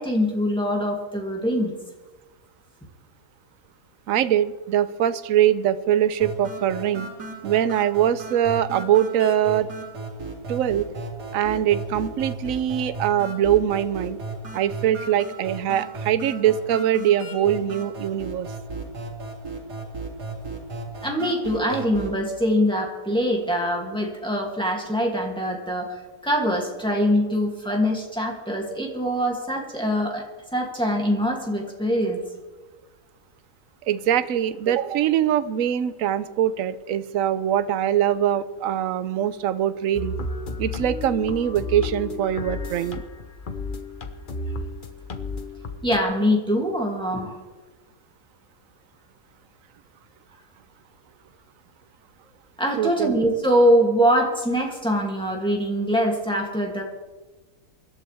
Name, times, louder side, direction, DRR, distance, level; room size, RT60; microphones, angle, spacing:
voice 1, 0.0-1.7 21.0-30.2 30.5-32.2 45.8-47.4 52.6-56.8, equal, 5° left, -1 dB, 2.5 m, -23 dB
voice 2, 4.1-7.1 7.4-9.7 10.5-10.9 11.3-14.2 14.5-18.5 33.9-40.1 40.6-43.0 52.8-53.2, right 10 dB, 65° right, 13 dB, 1.0 m, -22 dB
sound 1, 6.2-22.2, right 3 dB, 85° right, 3.2 m, -35 dB
sound 2, 39.9-46.0, left 3 dB, 35° left, 1.0 m, -32 dB
25.0 x 11.5 x 3.5 m, 1.2 s
omnidirectional pair, 1.7 m